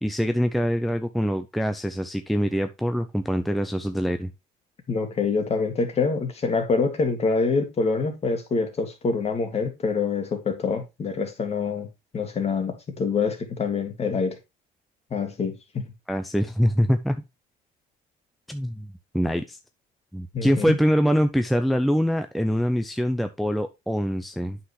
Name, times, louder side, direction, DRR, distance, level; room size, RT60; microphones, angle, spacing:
voice 1, 0.0-4.3 16.1-17.2 18.5-18.9 19.1-19.6 20.1-24.6, equal, ahead, 0.6 m, -24 dB
voice 2, 4.9-11.9 12.1-14.4 15.1-15.9 20.3-20.8, left 4 dB, 40° left, 2.3 m, -26 dB
8.6 x 5.8 x 3.1 m
cardioid pair, 110°, 17 cm